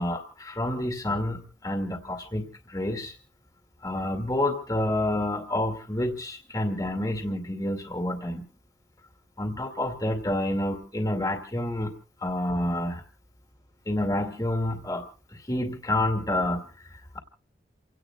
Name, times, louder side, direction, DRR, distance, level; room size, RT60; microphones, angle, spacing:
voice 1, 0.0-3.1 3.8-8.5 9.4-11.9 12.2-13.0 13.9-15.1 15.5-16.6, left 1 dB, 20° left, 4 dB, 2.3 m, -28 dB
29.0 x 17.5 x 2.4 m, 0.35 s
head